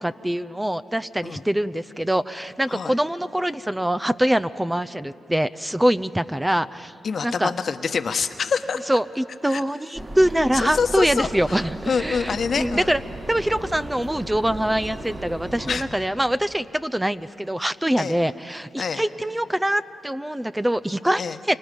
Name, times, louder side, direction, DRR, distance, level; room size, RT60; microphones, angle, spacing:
voice 1, 0.0-6.9 7.2-7.5 8.9-13.0 13.3-21.6, right 1 dB, 10° right, 12 dB, 0.6 m, -24 dB
voice 2, 7.0-8.9 9.5-9.6 10.5-12.9 15.7-15.8 18.0-18.2 18.8-19.0 21.2-21.4, left 5 dB, 60° left, 9 dB, 1.1 m, -26 dB
sound 1, 9.9-15.8, right 1 dB, 35° right, 5.9 m, -35 dB
28.0 x 25.0 x 5.3 m, 2.6 s
supercardioid pair, 45°, 0 cm